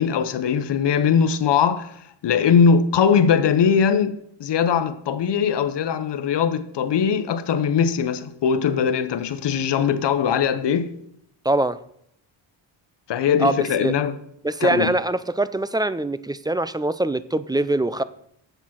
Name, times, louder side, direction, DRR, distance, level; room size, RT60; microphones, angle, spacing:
voice 1, 0.0-1.9 2.2-10.9 13.1-14.2 14.6-14.9, left 7 dB, 60° left, 1.0 m, -20 dB
voice 2, 11.4-11.8 13.4-13.9 14.4-18.0, right 2 dB, 10° right, 0.4 m, -23 dB
8.0 x 7.2 x 5.8 m
cardioid pair, 80°, 46 cm